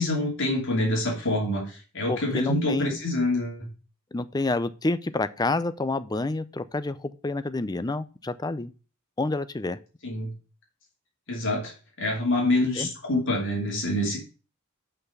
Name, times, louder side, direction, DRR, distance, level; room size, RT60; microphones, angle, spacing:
voice 1, 0.0-3.7 10.0-10.3 11.3-11.7 12.0-14.2, left 1 dB, 60° left, 3.0 m, -26 dB
voice 2, 2.1-2.9 4.1-8.7 9.2-9.8 12.8-12.9, left 2 dB, 20° left, 0.4 m, -28 dB
6.1 x 5.6 x 6.6 m
head